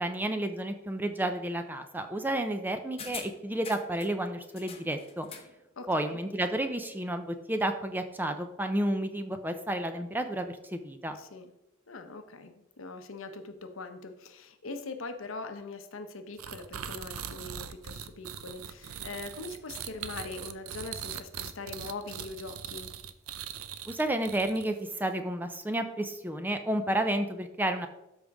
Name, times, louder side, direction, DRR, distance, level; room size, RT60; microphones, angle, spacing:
voice 1, 0.0-5.3 5.9-11.2 23.9-27.9, right 1 dB, 10° right, 7 dB, 0.5 m, -31 dB
sound 1, 3.0-4.1 4.6-5.6 5.9-6.0, left 6 dB, 25° left, 0.9 m, -44 dB
voice 2, 5.8-6.2 11.2-11.5 11.9-22.9, left 3 dB, 70° left, 7 dB, 0.9 m, -42 dB
sound 2, 16.4-24.9, right 9 dB, 90° right, 0.6 m, -41 dB
12.5 x 5.2 x 3.6 m, 0.88 s
head